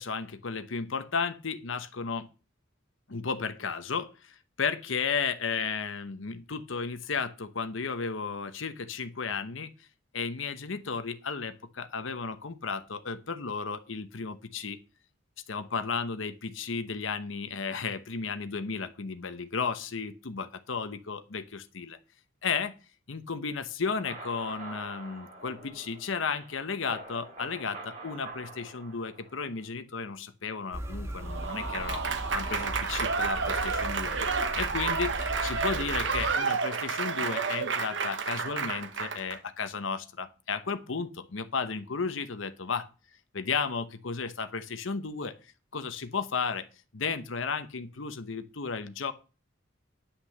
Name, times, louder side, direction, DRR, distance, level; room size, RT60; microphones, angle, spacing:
voice 1, 0.0-2.3 3.1-9.7 10.1-14.8 15.5-22.0 22.4-22.7 23.1-32.0 32.3-42.9 43.3-45.4 45.7-46.7 46.9-49.1, left 5 dB, 80° left, 10 dB, 0.9 m, -34 dB
sound 1, 23.8-29.6, right 2 dB, 35° right, 4.6 m, -46 dB
sound 2, 30.7-36.4, right 1 dB, 15° right, 1.4 m, -38 dB
Applause / Crowd, 31.2-39.4, right 5 dB, 65° right, 1.2 m, -30 dB
9.9 x 6.0 x 6.6 m, 0.34 s
head